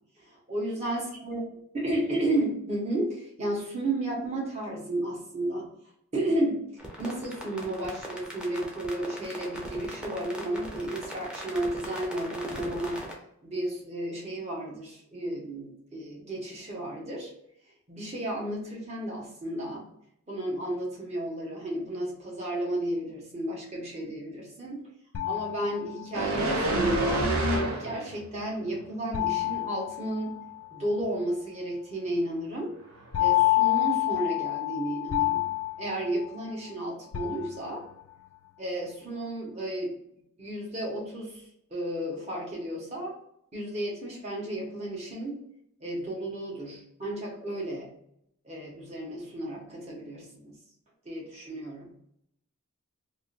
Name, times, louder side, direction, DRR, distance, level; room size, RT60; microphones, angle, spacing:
voice 1, 0.3-1.4 1.7-5.7 6.1-6.6 7.0-13.0 13.4-17.3 17.9-19.9 20.3-24.8 25.2-27.3 27.8-30.4 30.7-32.7 33.2-35.4 35.8-37.8 38.6-39.9 40.4-41.4 41.7-43.1 43.5-45.4 45.8-47.9 48.4-50.5 51.0-51.9, right 1 dB, 30° right, -3 dB, 1.1 m, -33 dB
sound 1, 6.8-13.1, equal, 5° right, 0.6 m, -40 dB
sound 2, 25.1-26.4 29.1-30.8 33.1-36.7 37.1-38.1, left 18 dB, 70° left, 0.3 m, -28 dB
sound 3, 26.1-28.2 28.6-28.8, right 1 dB, 85° right, 0.7 m, -27 dB
3.7 x 2.6 x 2.5 m, 0.74 s
head